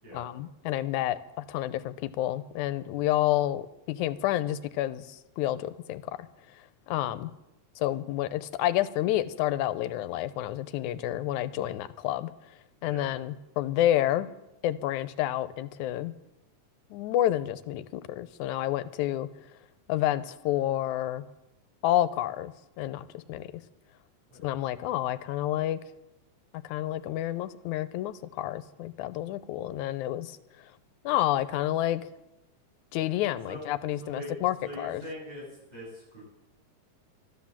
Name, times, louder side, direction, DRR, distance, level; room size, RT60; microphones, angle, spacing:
voice 1, 0.1-6.3 6.9-7.3 7.8-12.3 12.8-14.3 14.6-16.1 16.9-19.3 19.9-21.2 21.8-23.6 24.4-25.8 26.6-30.4 31.0-32.0 32.9-35.0, left 13 dB, 85° left, 14 dB, 2.1 m, -29 dB
voice 2, 34.0-34.4 34.6-35.4 35.7-36.2, equal, 35° right, -6 dB, 8.5 m, -42 dB
12.5 x 12.5 x 7.3 m, 0.93 s
omnidirectional pair, 3.4 m